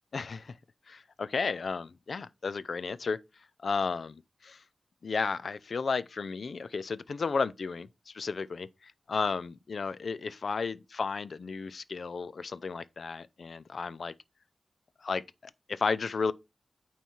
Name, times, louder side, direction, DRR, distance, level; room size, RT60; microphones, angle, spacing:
voice 1, 0.1-0.6 0.9-3.2 3.6-4.6 5.0-14.1 15.0-16.3, left 4 dB, 80° left, 0.4 m, -33 dB
9.0 x 3.2 x 4.2 m
wide cardioid pair, 75°, 0 cm